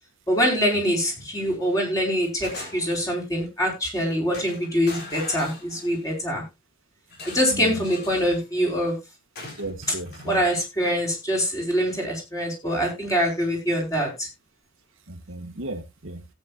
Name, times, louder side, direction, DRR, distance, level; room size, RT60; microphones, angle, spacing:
voice 1, 0.3-6.4 7.2-9.0 9.9-10.0 10.2-14.3, equal, 15° left, 0 dB, 4.4 m, -24 dB
sound 1, 1.2-1.6 2.0-3.1 3.9-4.0 4.3-6.2 7.1-8.4 9.4-10.3, left 2 dB, 50° left, 4.1 m, -41 dB
voice 2, 7.5-7.8 9.6-10.4 15.1-16.3, right 2 dB, 75° right, 5 dB, 1.7 m, -35 dB
17.0 x 8.8 x 2.4 m, 0.23 s
head